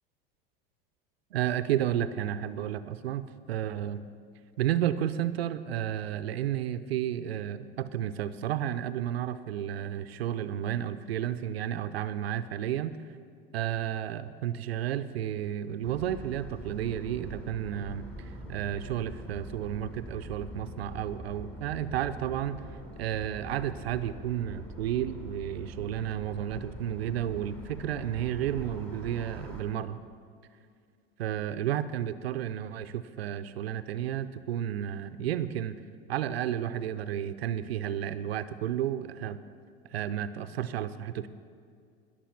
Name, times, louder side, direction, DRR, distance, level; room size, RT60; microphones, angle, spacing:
voice 1, 1.3-4.0 4.6-13.2 13.5-30.0 31.2-35.8 36.1-39.4 39.9-41.3, right 10 dB, 85° right, 11 dB, 0.6 m, -32 dB
sound 1, 15.8-29.6, right 1 dB, 5° left, 3.0 m, -44 dB
19.0 x 6.9 x 5.8 m, 2.3 s
hypercardioid pair, 100°, 30 cm